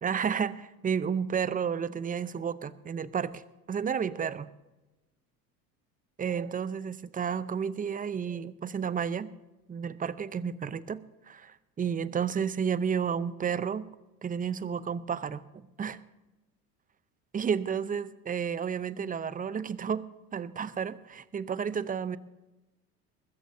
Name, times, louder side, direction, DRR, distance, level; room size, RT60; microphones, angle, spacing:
voice 1, 0.0-3.4 3.7-4.5 6.2-9.3 9.7-13.9 14.2-16.0 17.3-20.1 20.3-22.2, right 7 dB, 20° right, 16 dB, 0.7 m, -31 dB
21.0 x 14.0 x 2.7 m, 1.0 s
hypercardioid pair, 75°, 46 cm